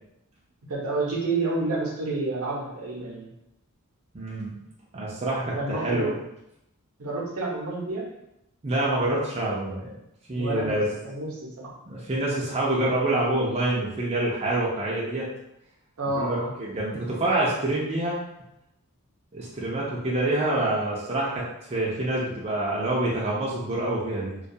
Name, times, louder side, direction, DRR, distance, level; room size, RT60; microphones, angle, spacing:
voice 1, 0.7-3.3 5.6-6.1 7.0-8.1 10.3-11.7 16.0-16.5, right 2 dB, 75° right, -3 dB, 0.7 m, -29 dB
voice 2, 4.1-4.5 4.9-6.1 8.6-9.9 10.3-10.9 11.9-15.3 16.2-18.2 19.3-24.3, right 1 dB, 30° right, -5 dB, 0.4 m, -26 dB
2.2 x 2.2 x 2.6 m, 0.84 s
head